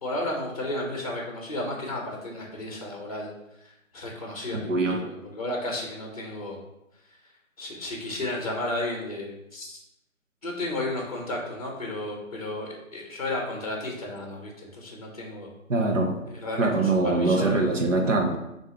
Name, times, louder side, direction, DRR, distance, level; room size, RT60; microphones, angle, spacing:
voice 1, 0.0-3.3 3.6-6.6 7.6-9.8 10.4-15.5 16.3-17.7, left 1 dB, 25° left, -1 dB, 0.8 m, -33 dB
voice 2, 4.5-5.0 15.7-16.2 16.6-18.4, right 2 dB, 65° right, 3 dB, 0.9 m, -23 dB
3.7 x 2.7 x 4.3 m, 0.86 s
figure-of-eight pair, 170°, 41 cm